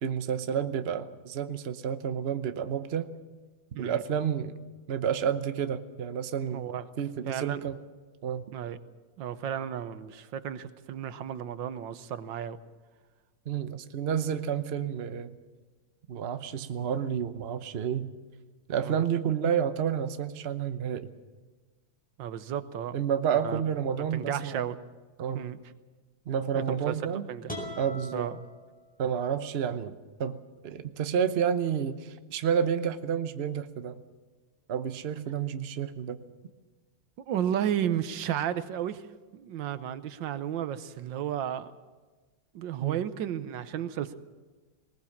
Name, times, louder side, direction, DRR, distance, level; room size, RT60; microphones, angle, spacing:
voice 1, 0.0-3.1 3.8-4.5 4.9-6.7 7.0-7.8 8.2-8.5 13.5-15.4 16.1-18.1 18.7-21.1 22.9-24.6 25.2-25.5 26.3-27.2 27.8-28.3 29.0-29.9 30.2-34.0 34.7-36.2 42.8-43.0, right 8 dB, 45° right, 10 dB, 0.9 m, -30 dB
voice 2, 6.5-6.8 7.3-7.6 8.5-8.8 9.2-12.6 18.8-19.0 22.2-22.9 23.3-23.6 24.1-24.8 25.3-25.6 26.5-27.0 27.3-27.5 28.1-28.4 37.3-39.1 39.3-41.7 42.5-44.2, right 10 dB, 80° right, 13 dB, 1.6 m, -33 dB
sound 1, 27.5-29.4, left 1 dB, 5° left, 5.0 m, -42 dB
20.0 x 19.5 x 7.3 m, 1.3 s
omnidirectional pair, 2.0 m